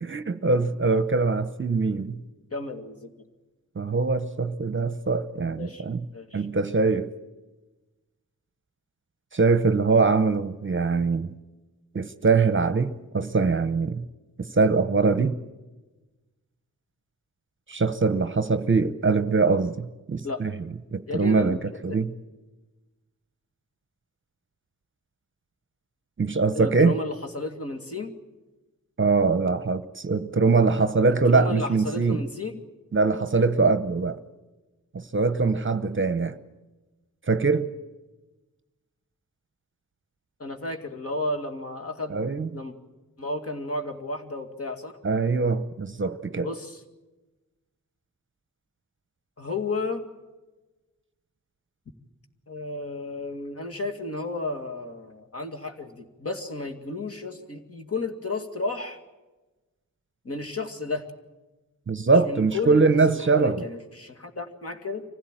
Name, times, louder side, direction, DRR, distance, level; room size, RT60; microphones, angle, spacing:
voice 1, 0.0-2.2 3.8-6.0 6.3-7.1 9.3-11.3 11.9-14.0 14.4-15.4 17.7-21.6 21.8-22.1 26.2-27.0 29.0-32.2 32.9-34.2 34.9-36.4 37.3-37.7 42.1-42.5 45.0-46.5 61.9-63.7, right 4 dB, 35° right, 0.9 m, -23 dB
voice 2, 2.5-3.1 5.6-5.8 6.1-6.5 20.2-20.4 21.1-21.6 21.9-22.0 26.5-28.1 31.3-32.6 40.4-42.2 42.5-42.7 43.2-44.9 46.4-46.8 49.4-50.0 52.5-59.0 60.2-61.1 62.2-65.0, left 3 dB, 45° left, 2.2 m, -33 dB
25.0 x 16.0 x 9.1 m
wide cardioid pair, 85°, 33 cm